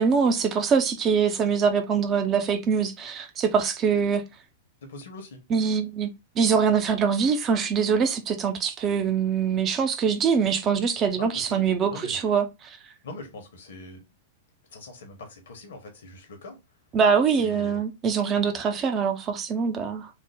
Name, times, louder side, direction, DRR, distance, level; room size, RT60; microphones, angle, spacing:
voice 1, 0.0-4.2 5.5-6.1 6.4-12.8 16.9-20.1, right 6 dB, 30° right, 0.5 m, -23 dB
voice 2, 4.8-5.4 11.1-12.2 13.0-14.0 14.7-16.6 17.4-17.8, left 2 dB, 65° left, 1.0 m, -42 dB
3.3 x 2.1 x 3.3 m
figure-of-eight pair, 100°, 0 cm